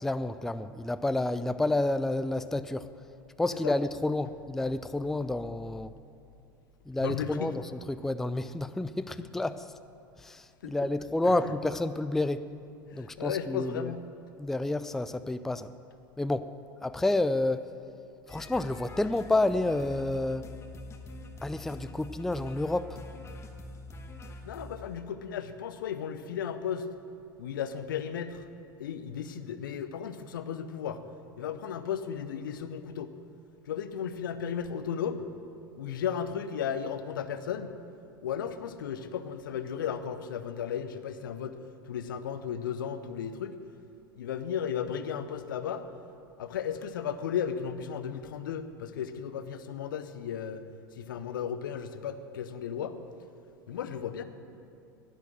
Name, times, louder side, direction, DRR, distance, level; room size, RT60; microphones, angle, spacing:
voice 1, 0.0-2.9 3.4-5.9 6.9-9.7 10.2-12.5 12.9-13.9 14.4-15.7 16.2-16.5 16.8-17.7 18.3-20.5 21.4-23.0, left 2 dB, 5° left, 13 dB, 0.3 m, -29 dB
voice 2, 7.0-7.5 10.6-10.7 11.2-11.6 12.9-14.0 24.4-26.9 27.4-28.5 28.8-31.0 31.4-33.1 33.7-35.3 35.8-37.8 38.2-41.6 41.8-43.5 44.2-45.8 46.4-50.6 51.0-53.0 53.7-54.2, left 8 dB, 70° left, 11 dB, 0.7 m, -35 dB
sound 1, 18.3-24.9, left 1 dB, 25° left, 1.2 m, -45 dB
10.5 x 10.5 x 7.7 m, 2.5 s
figure-of-eight pair, 75°, 12 cm